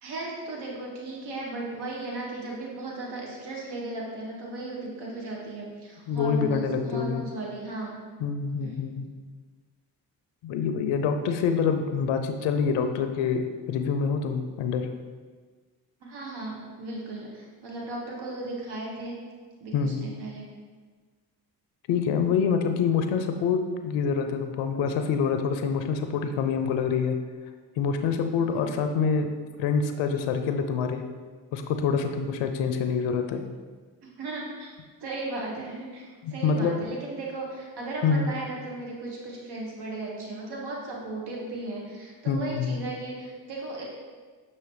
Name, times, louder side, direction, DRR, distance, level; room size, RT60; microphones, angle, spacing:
voice 1, 0.0-7.9 8.6-8.7 16.0-19.2 19.6-20.5 28.3-28.4 34.0-34.7 35.0-43.8, right 2 dB, 55° right, -2 dB, 1.2 m, -36 dB
voice 2, 6.1-7.2 8.2-9.1 10.4-14.9 19.7-20.0 21.9-27.2 27.8-29.3 29.6-31.0 31.5-33.4 36.2-36.8 38.0-38.3 42.3-42.8, left 6 dB, 70° left, 7 dB, 0.5 m, -26 dB
5.6 x 2.9 x 3.2 m, 1.5 s
hypercardioid pair, 50°, 47 cm